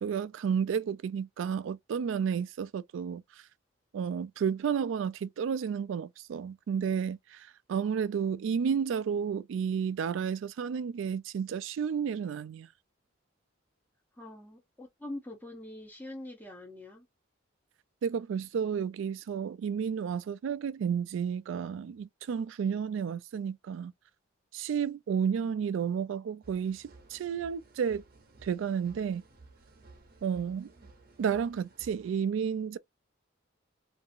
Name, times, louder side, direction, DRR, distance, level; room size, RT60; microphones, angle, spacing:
voice 1, 0.0-3.2 3.9-12.7 18.0-23.9 24.5-28.0 28.4-29.2 30.2-30.7 31.2-32.8, right 7 dB, 75° right, 0.3 m, -31 dB
voice 2, 14.2-17.0, left 1 dB, 10° left, 0.7 m, -44 dB
sound 1, 26.4-32.2, right 3 dB, 50° right, 0.7 m, -56 dB
2.7 x 2.5 x 2.5 m
head